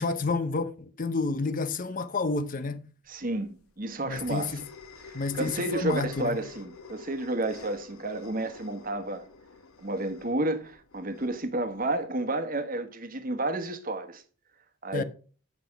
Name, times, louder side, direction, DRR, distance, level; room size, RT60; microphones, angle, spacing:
voice 1, 0.0-2.8 4.0-4.6 5.1-6.4 14.9-15.0, left 3 dB, 40° left, 0.6 m, -30 dB
voice 2, 3.1-4.6 5.0-9.3 9.8-14.2 14.8-15.0, right 2 dB, 40° right, 1.2 m, -31 dB
sound 1, 3.2-12.0, left 3 dB, 85° left, 1.1 m, -47 dB
8.7 x 5.9 x 5.9 m
head